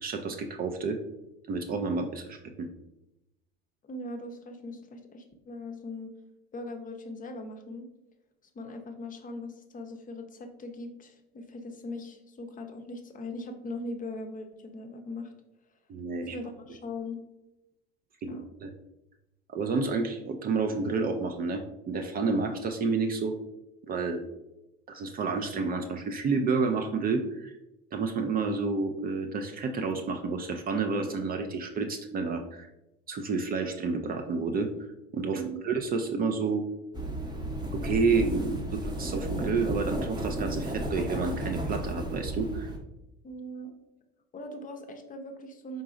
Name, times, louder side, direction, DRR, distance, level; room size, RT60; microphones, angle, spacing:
voice 1, 0.0-1.0 1.5-2.7 15.9-16.4 18.2-18.7 19.5-23.3 23.8-24.2 24.9-27.5 27.9-32.7 33.1-34.7 35.1-36.6 37.7-42.7, right 4 dB, 30° right, 5 dB, 0.4 m, -30 dB
voice 2, 3.8-6.1 6.5-7.8 8.5-15.3 16.2-17.2 18.3-18.4 35.3-35.6 43.2-43.7 44.3-45.8, left 1 dB, 25° left, 5 dB, 0.7 m, -40 dB
sound 1, 36.9-42.8, right 1 dB, 15° right, 0.8 m, -33 dB
4.7 x 3.8 x 2.5 m, 0.93 s
hypercardioid pair, 75°, 30 cm